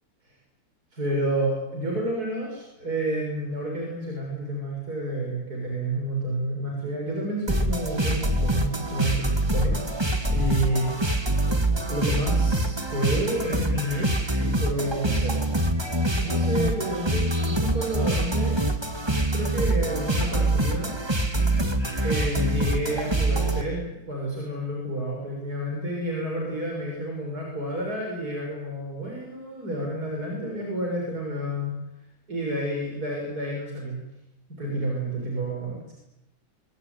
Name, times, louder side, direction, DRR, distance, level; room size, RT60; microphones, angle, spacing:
voice 1, 0.9-9.8 10.3-10.9 11.9-14.1 14.3-15.4 16.2-18.7 19.3-20.9 22.0-31.7 32.3-34.0 34.6-35.9, right 1 dB, 85° right, 0 dB, 6.6 m, -30 dB
sound 1, 7.5-23.6, right 1 dB, 15° right, 2.0 m, -25 dB
24.5 x 24.0 x 9.6 m, 0.91 s
omnidirectional pair, 1.6 m